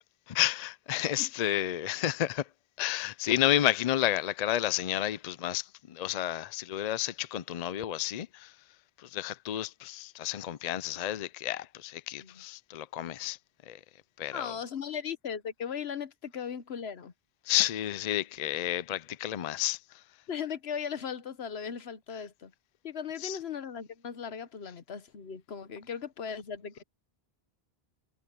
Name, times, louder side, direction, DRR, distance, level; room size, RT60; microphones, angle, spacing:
voice 1, 0.3-2.5 2.8-8.5 9.0-13.4 13.7-13.8 14.2-14.5 17.5-20.0 23.2-23.4, left 13 dB, 50° left, 0.5 m, -31 dB
voice 2, 14.3-17.1 20.3-22.5 22.8-26.8, left 7 dB, 85° left, 1.3 m, -37 dB
omnidirectional pair, 1.0 m